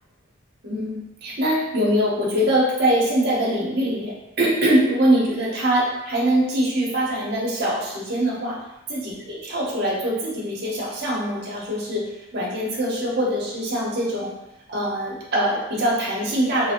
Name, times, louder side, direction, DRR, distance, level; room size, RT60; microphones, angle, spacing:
voice 1, 0.6-8.6 8.9-14.4 14.7-16.7, right 1 dB, 50° right, -4 dB, 0.8 m, -23 dB
2.9 x 2.5 x 2.8 m, 0.92 s
head